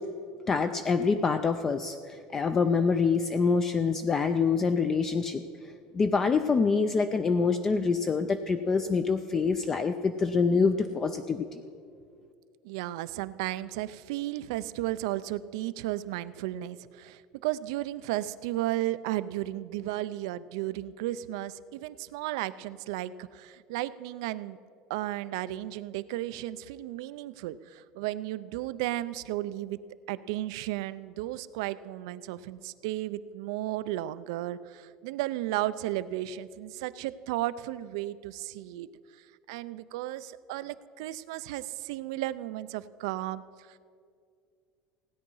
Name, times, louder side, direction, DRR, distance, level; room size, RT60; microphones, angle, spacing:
voice 1, 0.5-5.4 5.9-11.6, left 5 dB, 20° left, 9 dB, 0.4 m, -26 dB
voice 2, 12.6-24.6 24.9-29.8 30.1-38.9 39.5-43.4 43.7-43.8, right 15 dB, 85° right, 15 dB, 0.5 m, -34 dB
16.5 x 9.6 x 5.5 m, 2.3 s
cardioid pair, 170°, 3 cm